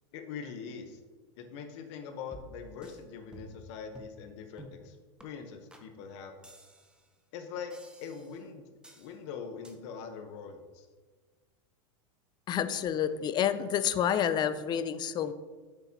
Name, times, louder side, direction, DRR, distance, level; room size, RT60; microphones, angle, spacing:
voice 1, 0.1-1.0 1.4-5.0 5.2-6.3 7.3-7.7 8.0-8.6 8.9-10.9, left 6 dB, 60° left, 6 dB, 1.0 m, -42 dB
sound 1, 2.3-3.0 3.3-3.7 3.9-4.2 4.6-4.8 5.2-5.3 5.7-5.9 6.4-7.1 7.7-8.4 8.8-9.1 9.6-9.8, right 1 dB, 5° right, 0.8 m, -52 dB
voice 2, 12.5-15.3, left 9 dB, 25° left, 13 dB, 0.4 m, -29 dB
8.1 x 6.9 x 2.9 m, 1.4 s
hypercardioid pair, 115°, 16 cm